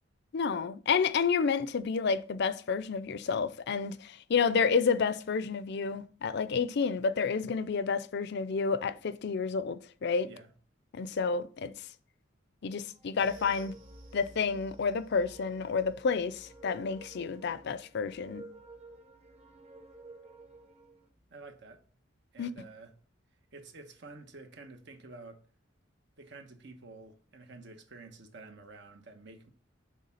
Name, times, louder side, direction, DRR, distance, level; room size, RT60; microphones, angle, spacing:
voice 1, 0.3-10.3 10.9-11.7 12.6-13.7 14.1-18.4 22.4-22.5, left 5 dB, 60° left, 0.4 m, -30 dB
sound 1, 12.9-21.1, right 2 dB, 30° right, 1.1 m, -54 dB
sound 2, 13.2-21.8 22.1-22.3 22.7-22.8, right 1 dB, 80° right, 1.3 m, -58 dB
voice 2, 21.3-21.8 22.3-22.9 23.5-25.4 26.2-29.5, right 3 dB, 65° right, 1.0 m, -50 dB
6.5 x 3.5 x 5.6 m
head